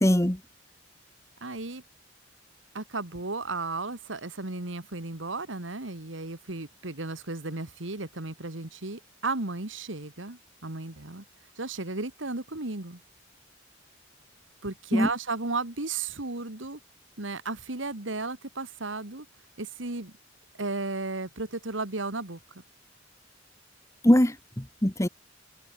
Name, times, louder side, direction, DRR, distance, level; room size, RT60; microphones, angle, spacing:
voice 1, 0.0-0.4 14.9-15.1 24.0-25.1, equal, 15° left, 1.6 m, -22 dB
voice 2, 1.4-1.8 2.7-11.2 11.6-13.0 14.6-16.8 17.2-19.3 19.6-20.1 20.6-22.4, right 3 dB, 75° right, 2.2 m, -34 dB
head